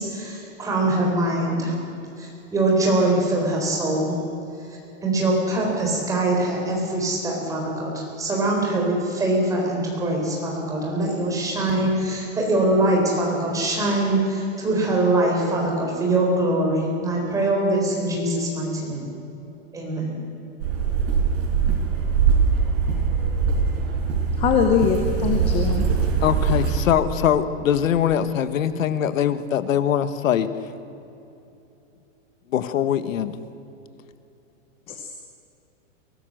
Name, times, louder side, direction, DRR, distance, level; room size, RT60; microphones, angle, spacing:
voice 1, 0.0-1.7 2.2-4.1 5.0-19.1 19.7-20.2, right 2 dB, 10° right, -1 dB, 4.0 m, -23 dB
sound 1, 20.6-26.8, right 6 dB, 50° right, 5.0 m, -22 dB
voice 2, 24.4-25.8 34.9-35.0, left 7 dB, 15° left, 5 dB, 0.9 m, -21 dB
voice 3, 26.2-30.5 32.5-33.3, left 9 dB, 85° left, 12 dB, 1.5 m, -22 dB
23.5 x 17.5 x 7.7 m, 2.9 s
supercardioid pair, 175°, 39 cm